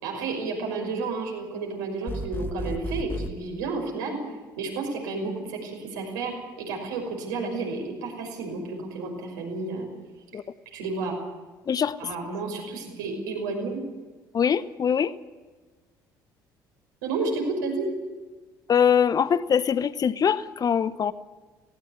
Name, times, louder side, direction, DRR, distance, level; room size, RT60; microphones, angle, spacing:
voice 1, 0.0-4.2 4.6-9.9 10.7-11.1 12.0-13.8 17.0-17.9, right 3 dB, 75° right, 2 dB, 5.7 m, -31 dB
sound 1, 2.1-3.3, left 1 dB, 20° left, 1.5 m, -33 dB
voice 2, 14.3-15.1 18.7-21.1, left 7 dB, 40° left, 16 dB, 0.9 m, -23 dB
19.0 x 17.5 x 9.7 m, 1.3 s
figure-of-eight pair, 55°, 10 cm